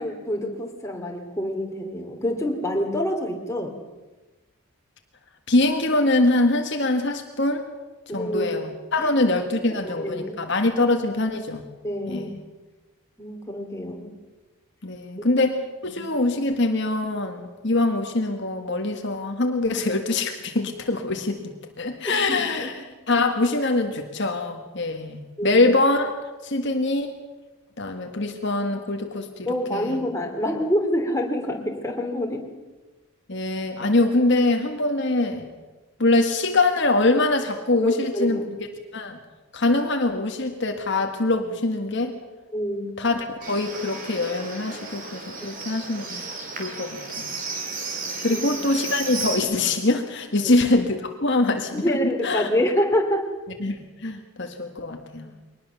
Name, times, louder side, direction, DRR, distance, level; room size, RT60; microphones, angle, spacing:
voice 1, 0.0-3.7 8.1-8.5 9.0-9.1 9.8-10.4 11.8-12.3 13.2-14.1 15.8-16.0 22.3-22.7 25.4-25.6 29.5-32.5 37.8-38.5 42.5-42.8 45.4-45.5 48.2-48.4 50.4-50.5 51.7-53.3 55.2-55.3, equal, 15° left, 1 dB, 2.9 m, -26 dB
voice 2, 5.5-7.6 8.1-11.7 12.1-12.3 14.8-21.4 21.8-22.7 23.1-26.1 26.4-27.1 27.8-30.0 33.3-35.5 36.0-38.4 38.9-39.2 39.5-42.2 43.0-46.2 46.6-47.3 48.2-52.0 52.2-52.5 53.6-55.3, left 2 dB, 55° left, 4 dB, 1.6 m, -23 dB
Livestock farm animals working animals, 43.4-49.4, right 3 dB, 40° right, 3.8 m, -34 dB
23.0 x 19.5 x 7.0 m, 1.2 s
head